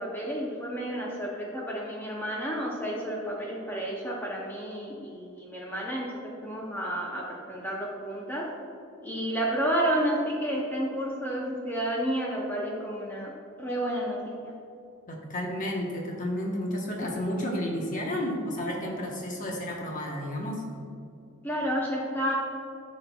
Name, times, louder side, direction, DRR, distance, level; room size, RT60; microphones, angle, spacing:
voice 1, 0.0-8.5 9.0-13.3 13.6-14.5 21.4-22.3, right 1 dB, 10° left, -4 dB, 0.6 m, -31 dB
voice 2, 15.1-20.6, left 1 dB, 40° left, -1 dB, 1.0 m, -31 dB
12.0 x 4.3 x 2.3 m, 2.6 s
head